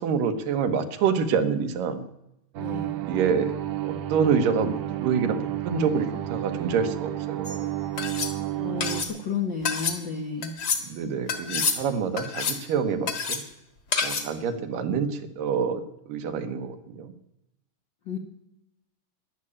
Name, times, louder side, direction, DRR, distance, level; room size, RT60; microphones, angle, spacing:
voice 1, 0.0-2.0 3.1-3.5 3.8-5.4 5.6-7.7 10.9-13.4 14.0-17.1, right 6 dB, 85° right, 9 dB, 2.9 m, -27 dB
sound 1, 2.5-9.0, right 14 dB, 65° right, 2.2 m, -31 dB
voice 2, 2.6-3.0 8.6-10.6 18.0-18.2, left 5 dB, 65° left, 4 dB, 1.1 m, -32 dB
sound 2, 7.4-7.6 8.0-8.3 8.8-9.1 9.6-10.0 10.4-10.8 11.3-11.8 12.2-12.7 13.1-13.4 13.9-14.3, left 5 dB, 40° left, 1.8 m, -28 dB
14.0 x 11.5 x 8.6 m, 0.86 s
omnidirectional pair, 3.8 m